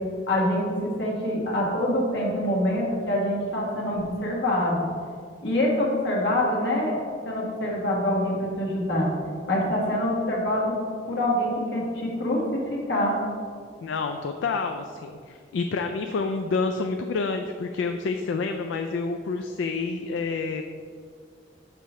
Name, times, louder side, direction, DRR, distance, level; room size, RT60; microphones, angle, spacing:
voice 1, 0.3-4.9 5.4-7.0 7.2-9.1 9.5-10.8 11.1-13.2, left 1 dB, 65° left, -4 dB, 1.5 m, -25 dB
voice 2, 13.8-20.6, left 4 dB, 80° left, 5 dB, 0.3 m, -28 dB
6.7 x 5.5 x 3.1 m, 2.1 s
head